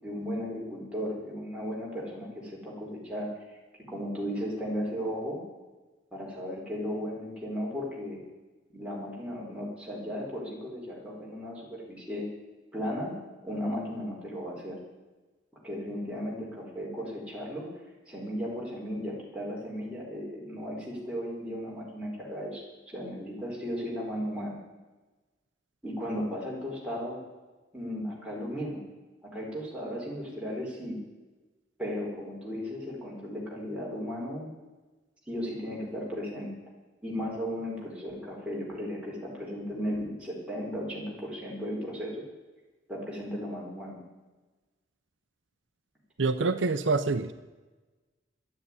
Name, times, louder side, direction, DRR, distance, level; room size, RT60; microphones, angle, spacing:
voice 1, 0.0-3.6 3.9-5.4 6.1-8.2 8.7-12.3 12.7-13.1 13.4-14.8 15.6-17.7 18.1-24.6 25.8-27.2 27.7-28.8 29.2-30.9 31.8-34.5 35.3-36.5 37.0-42.2 42.9-44.0, equal, 5° right, -5 dB, 4.6 m, -35 dB
voice 2, 46.2-47.3, right 3 dB, 75° right, 10 dB, 0.7 m, -26 dB
12.0 x 9.8 x 9.8 m, 1.2 s
head